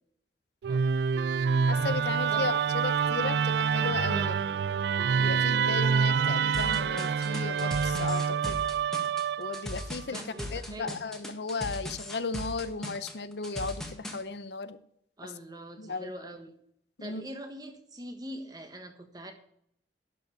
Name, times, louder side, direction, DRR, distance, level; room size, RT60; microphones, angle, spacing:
Musical instrument, 0.6-9.8, right 6 dB, 65° right, 0.3 m, -27 dB
voice 1, 1.7-4.3 5.2-8.6 9.4-10.2 10.5-14.8 15.2-15.3 15.8-16.1 17.0-17.2, left 4 dB, 70° left, 13 dB, 0.7 m, -35 dB
voice 2, 4.1-4.5 10.1-11.1 15.2-16.5 17.0-19.3, equal, 20° right, 6 dB, 1.4 m, -43 dB
sound 1, 6.5-14.2, left 1 dB, 5° left, 1.6 m, -38 dB
11.5 x 5.3 x 8.0 m, 0.68 s
head